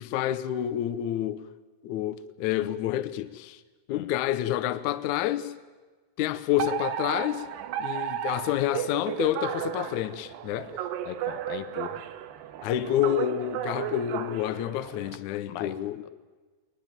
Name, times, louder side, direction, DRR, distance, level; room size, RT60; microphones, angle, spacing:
voice 1, 0.0-1.4 1.8-3.6 3.9-5.5 6.2-7.4 7.8-10.7 12.6-16.0, left 12 dB, 90° left, 1.7 m, -28 dB
Alarm, 6.6-15.2, right 11 dB, 85° right, 3.3 m, -34 dB
voice 2, 11.0-12.0 15.5-15.7, left 11 dB, 70° left, 2.7 m, -39 dB
21.5 x 21.5 x 9.1 m
omnidirectional pair, 4.7 m